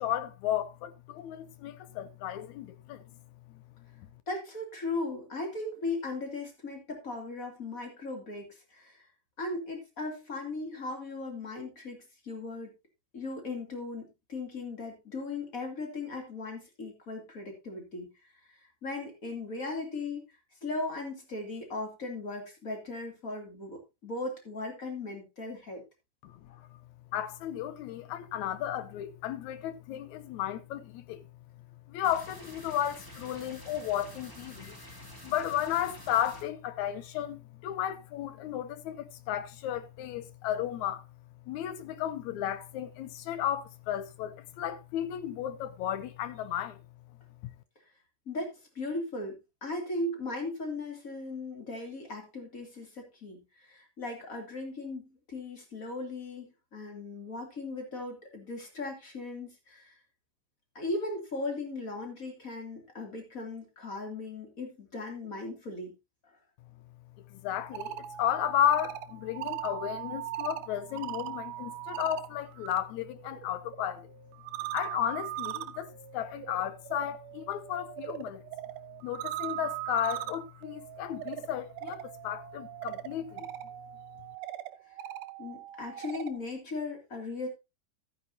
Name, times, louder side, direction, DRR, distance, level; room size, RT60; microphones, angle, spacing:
voice 1, 0.0-3.0 3.5-3.6 4.0-4.1 26.2-26.8 27.1-31.2 31.9-41.0 41.5-46.8 67.3-74.1 74.7-78.4 79.0-83.5, left 11 dB, 75° left, 2.0 m, -34 dB
voice 2, 4.3-9.1 9.4-12.7 13.1-18.1 18.8-20.2 20.6-25.8 48.3-49.3 49.6-59.9 60.7-65.9 66.2-66.3 85.4-87.5, left 2 dB, 25° left, 2.8 m, -37 dB
sound 1, 32.0-36.4, right 1 dB, 10° left, 1.6 m, -49 dB
sound 2, 67.5-72.8 73.1-86.4, right 14 dB, 80° right, 1.5 m, -40 dB
13.0 x 9.3 x 2.7 m
omnidirectional pair, 3.7 m